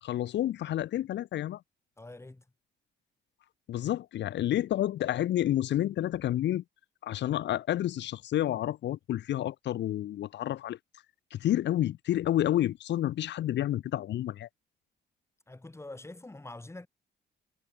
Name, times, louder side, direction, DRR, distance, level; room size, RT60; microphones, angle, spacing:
voice 1, 0.0-1.6 3.7-6.6 7.0-10.8 11.3-14.5, left 13 dB, 65° left, 0.6 m, -29 dB
voice 2, 2.0-2.4 15.5-16.9, left 2 dB, 15° left, 2.9 m, -45 dB
cardioid pair, 90°, 20 cm